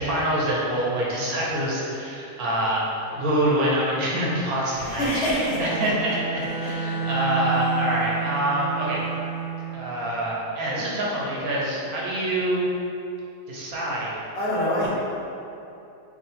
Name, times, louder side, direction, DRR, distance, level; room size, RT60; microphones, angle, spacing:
voice 1, 0.0-5.1 5.6-9.0 9.7-12.7 13.5-14.1 14.8-14.9, right 1 dB, 85° right, -5 dB, 1.3 m, -25 dB
voice 2, 4.7-5.9 6.4-7.0 14.3-14.9, equal, 50° left, -7 dB, 1.1 m, -26 dB
Bowed string instrument, 5.4-9.9, right 6 dB, 20° left, 1.2 m, -30 dB
5.2 x 2.7 x 3.4 m, 2.7 s
omnidirectional pair, 1.5 m